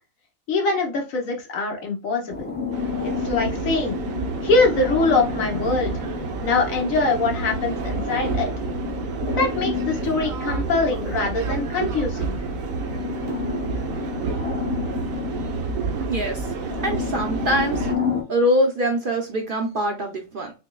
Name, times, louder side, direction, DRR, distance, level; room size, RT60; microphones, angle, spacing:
voice 1, 0.5-2.5 3.0-4.0 4.4-6.0 6.4-8.5 9.3-12.4, left 3 dB, 75° left, 2 dB, 1.4 m, -23 dB
sound 1, 2.3-18.2, left 5 dB, 15° left, 0.4 m, -31 dB
sound 2, 2.7-18.0, right 5 dB, 80° right, 1.1 m, -30 dB
voice 2, 16.1-16.5 16.8-17.9 18.3-20.5, equal, 55° right, 2 dB, 0.6 m, -23 dB
6.0 x 2.1 x 2.2 m, 0.31 s
omnidirectional pair, 1.4 m